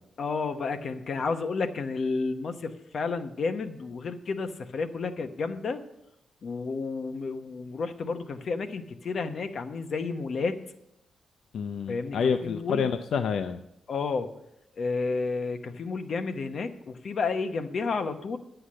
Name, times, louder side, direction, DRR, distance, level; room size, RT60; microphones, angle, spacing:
voice 1, 0.2-5.8 6.4-10.6 11.9-12.9 13.9-14.3 14.8-18.4, left 4 dB, 50° left, 8 dB, 0.9 m, -31 dB
voice 2, 11.5-13.6, left 6 dB, 80° left, 9 dB, 0.5 m, -28 dB
9.9 x 7.9 x 6.5 m, 0.82 s
wide cardioid pair, 135°, 0 cm